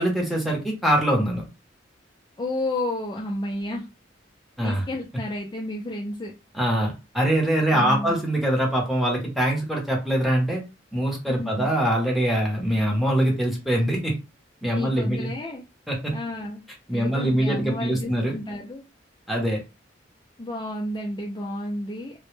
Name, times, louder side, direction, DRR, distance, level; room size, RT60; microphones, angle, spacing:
voice 1, 0.0-1.4 4.6-4.8 6.5-10.6 10.9-14.2 14.6-15.3 15.9-16.1 16.9-18.3 19.3-19.6, right 1 dB, ahead, -2 dB, 0.7 m, -23 dB
voice 2, 2.4-3.9 4.6-6.3 7.7-8.2 11.3-11.7 14.7-15.6 16.1-16.6 16.9-18.8 20.4-22.2, left 1 dB, 20° left, -2 dB, 0.3 m, -31 dB
2.1 x 2.0 x 3.1 m, 0.28 s
head